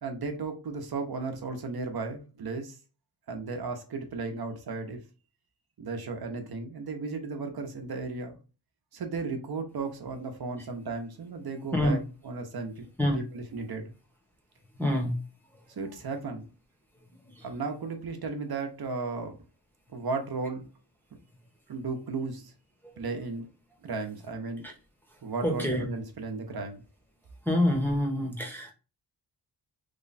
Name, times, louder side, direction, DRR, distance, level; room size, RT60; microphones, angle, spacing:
voice 1, 0.0-2.8 3.3-5.0 5.8-8.4 8.9-12.0 12.2-12.9 13.3-13.9 15.7-16.5 17.4-19.4 19.9-20.6 21.7-22.5 23.0-23.5 23.8-24.6 25.2-26.8, right 4 dB, 60° right, 0.8 m, -35 dB
voice 2, 14.7-15.2 15.5-15.8 17.1-17.5 22.8-23.0 24.6-24.7 25.1-25.8 27.4-28.7, left 1 dB, 5° left, 0.7 m, -28 dB
3.2 x 2.2 x 4.0 m
wide cardioid pair, 140°, 42 cm